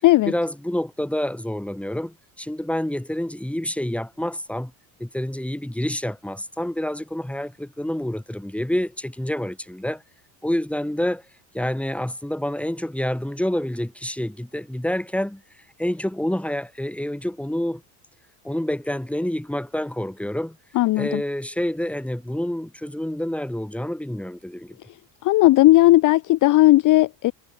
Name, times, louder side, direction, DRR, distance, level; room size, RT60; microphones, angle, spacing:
voice 1, 0.3-4.7 5.0-10.0 10.4-11.2 11.5-15.4 15.8-17.8 18.4-20.6 21.0-24.7, left 1 dB, 5° left, 5.9 m, -28 dB
voice 2, 20.7-21.2 25.2-27.3, left 17 dB, 45° left, 0.6 m, -16 dB
supercardioid pair, 115°, 45 cm